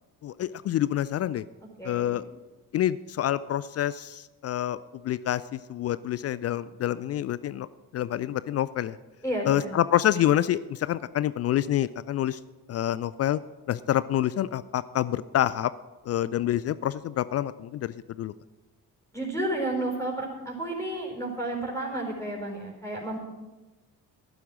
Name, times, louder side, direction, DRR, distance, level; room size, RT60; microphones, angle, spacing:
voice 1, 0.2-1.4 1.8-2.2 2.7-4.8 5.0-7.7 7.9-9.0 9.5-12.4 12.7-13.4 13.7-15.7 16.1-18.3, left 12 dB, 35° left, 17 dB, 0.4 m, -27 dB
voice 2, 1.8-2.2 9.2-9.7 19.1-23.2, right 1 dB, 5° left, -3 dB, 4.4 m, -31 dB
15.0 x 11.5 x 6.2 m, 1.1 s
figure-of-eight pair, 40°, 49 cm